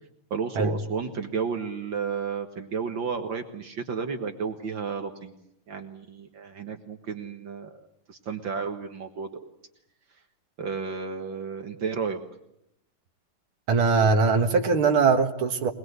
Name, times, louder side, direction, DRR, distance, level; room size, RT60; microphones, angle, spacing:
voice 1, 0.3-5.3 5.7-7.7 8.1-9.3 10.6-12.2, right 6 dB, 65° right, 5 dB, 2.2 m, -32 dB
voice 2, 13.7-15.7, right 4 dB, 90° right, 3 dB, 2.5 m, -21 dB
23.0 x 21.5 x 8.1 m, 0.79 s
omnidirectional pair, 2.3 m